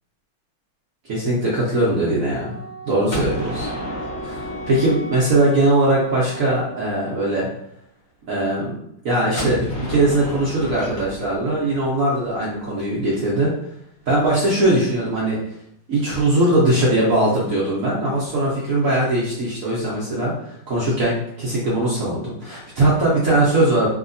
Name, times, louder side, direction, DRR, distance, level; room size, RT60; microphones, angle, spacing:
voice 1, 1.1-2.5 2.8-3.7 4.2-7.5 8.3-8.8 9.0-13.5 14.1-15.4 15.9-23.9, right 1 dB, 65° right, -6 dB, 0.8 m, -20 dB
Wind instrument woodwind instrument, 2.4-7.2, right 2 dB, 80° left, 0.7 m, -36 dB
Gunshot gunfire, 3.1-5.9 9.3-13.2, left 1 dB, 55° left, 1.0 m, -32 dB
3.2 x 2.8 x 2.6 m, 0.72 s
omnidirectional pair, 2.3 m